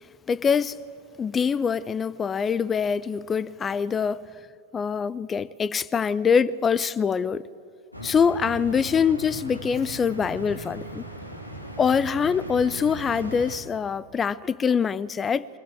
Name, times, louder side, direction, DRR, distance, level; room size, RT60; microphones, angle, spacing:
voice 1, 0.3-0.8 1.2-4.2 4.7-7.4 8.0-11.0 11.8-15.5, left 6 dB, 20° left, 0.5 m, -24 dB
sound 1, 7.9-13.6, equal, 85° left, 3.3 m, -38 dB
25.0 x 20.5 x 8.7 m
figure-of-eight pair, 90°, 0 cm